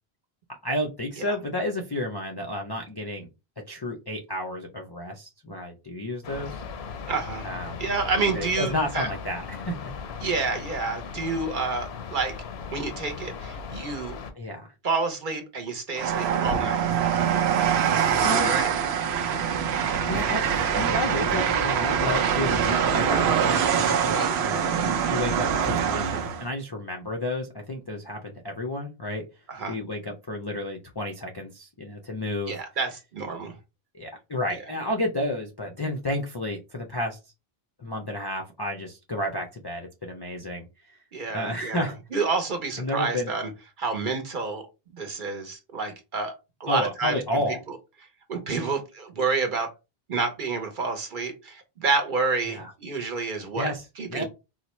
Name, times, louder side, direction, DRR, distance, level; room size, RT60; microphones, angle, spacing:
voice 1, 0.5-3.3 3.7-6.6 7.4-7.8 8.3-9.9 14.3-14.7 18.2-18.5 19.9-20.4 20.7-24.1 24.4-29.2 29.6-32.5 33.9-37.2 37.8-41.0 41.3-41.9 42.8-43.3 46.7-47.6 52.4-52.7 53.6-54.2, left 1 dB, 40° left, 1 dB, 0.3 m, -31 dB
sound 1, 6.2-14.3, left 5 dB, 80° left, 0.8 m, -38 dB
voice 2, 7.1-7.5 7.8-9.1 10.2-12.3 12.7-14.2 14.8-16.8 18.4-18.7 24.1-24.9 29.5-29.7 32.5-33.5 41.1-43.5 43.8-44.7 44.9-46.3 46.6-47.8 48.3-49.7 50.1-53.7 54.0-54.2, right 4 dB, 55° right, 5 dB, 0.9 m, -29 dB
Train, 16.0-26.5, right 7 dB, 85° right, 0.8 m, -24 dB
4.1 x 2.1 x 3.0 m, 0.27 s
omnidirectional pair, 1.0 m